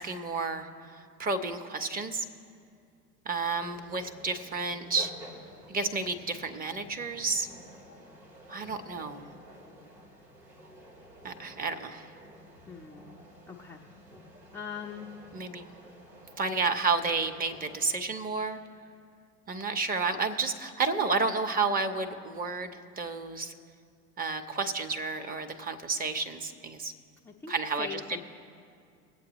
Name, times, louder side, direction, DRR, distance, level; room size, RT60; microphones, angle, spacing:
voice 1, 0.0-2.2 3.3-5.1 5.7-7.5 8.5-9.3 11.2-12.1 15.3-15.7 16.4-18.6 19.5-23.5 24.2-26.9 27.5-28.0, right 4 dB, 20° right, 7 dB, 0.8 m, -31 dB
sound 1, 3.4-18.1, right 1 dB, 90° right, 2.3 m, -51 dB
voice 2, 12.7-13.8 14.5-15.1 27.2-28.2, left 6 dB, 5° left, -1 dB, 0.4 m, -42 dB
21.5 x 8.3 x 3.0 m, 2.4 s
figure-of-eight pair, 85°, 47 cm